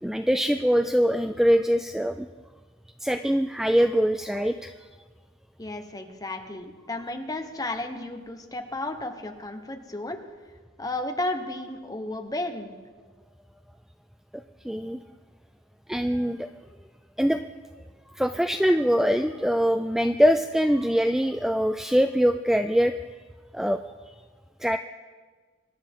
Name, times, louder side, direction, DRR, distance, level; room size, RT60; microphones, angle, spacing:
voice 1, 0.0-2.3 3.0-4.7 14.6-15.0 15.9-16.5 17.2-17.4 18.2-22.9 23.5-23.8 24.6-24.8, equal, ahead, 8 dB, 0.3 m, -23 dB
voice 2, 5.6-10.2 10.8-12.7, left 2 dB, 20° left, 5 dB, 1.1 m, -33 dB
25.0 x 11.5 x 3.7 m, 1.4 s
head